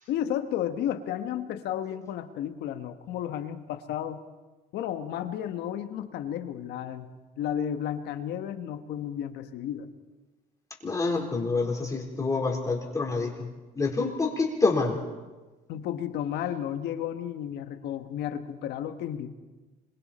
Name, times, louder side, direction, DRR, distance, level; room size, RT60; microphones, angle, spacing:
voice 1, 0.1-4.2 4.7-7.1 7.4-9.9 15.7-19.3, left 10 dB, 80° left, 8 dB, 1.5 m, -32 dB
voice 2, 10.8-15.0, left 3 dB, 20° left, -1 dB, 4.2 m, -27 dB
26.0 x 23.0 x 4.4 m, 1.2 s
cardioid pair, 110°, 17 cm